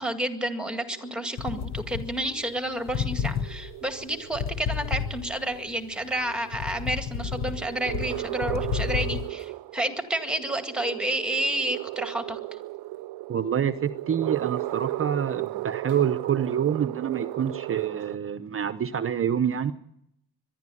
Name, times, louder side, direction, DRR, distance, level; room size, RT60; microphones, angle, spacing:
voice 1, 0.0-12.4, right 1 dB, ahead, 7 dB, 2.0 m, -30 dB
sound 1, 0.8-18.2, right 17 dB, 80° right, 0.7 m, -36 dB
sound 2, 1.4-2.6 2.9-5.6 6.0-9.3, left 7 dB, 45° left, 0.9 m, -31 dB
voice 2, 13.3-19.7, right 8 dB, 35° right, 12 dB, 0.8 m, -27 dB
23.0 x 11.5 x 9.9 m, 0.76 s
cardioid pair, 145°, 37 cm